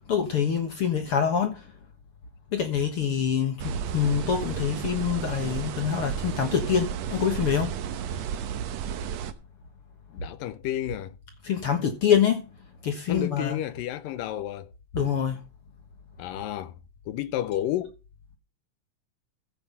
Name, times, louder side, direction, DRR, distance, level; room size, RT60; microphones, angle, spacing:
voice 1, 0.1-1.6 2.5-7.7 11.4-12.4 12.8-13.6 14.9-15.4, left 8 dB, 55° left, 1.7 m, -25 dB
sound 1, 3.6-9.3, right 8 dB, 70° right, 1.6 m, -33 dB
voice 2, 10.1-11.2 13.1-14.7 16.2-16.8 17.1-18.0, left 12 dB, 80° left, 2.5 m, -31 dB
15.0 x 5.7 x 5.6 m
omnidirectional pair, 4.1 m